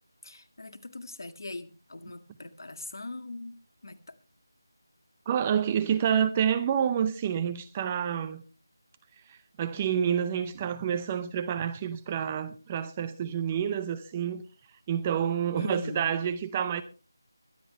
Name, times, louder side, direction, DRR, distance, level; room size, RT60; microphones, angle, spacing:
voice 1, 0.2-3.6 3.8-4.2 15.6-16.1, left 2 dB, 60° left, 1.9 m, -40 dB
voice 2, 5.3-8.4 9.3-14.4 14.9-16.8, right 8 dB, 20° right, 0.6 m, -28 dB
23.0 x 10.0 x 3.3 m
figure-of-eight pair, 165°, 2 cm